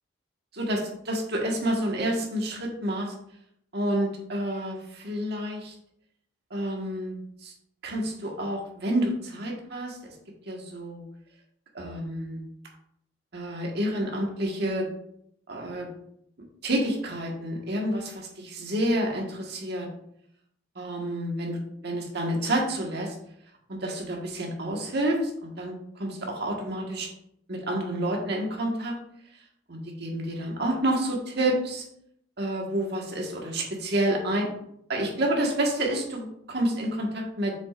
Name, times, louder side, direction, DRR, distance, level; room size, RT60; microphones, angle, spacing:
voice 1, 0.5-3.1 3.7-5.7 6.5-7.5 7.8-10.1 10.5-11.0 11.7-12.5 13.3-14.9 15.5-15.9 16.6-19.9 20.7-23.1 23.7-27.1 27.5-29.0 29.7-31.8 32.4-34.5 34.9-37.5, right 1 dB, 60° right, 0 dB, 1.6 m, -29 dB
7.4 x 6.1 x 2.5 m, 0.71 s
head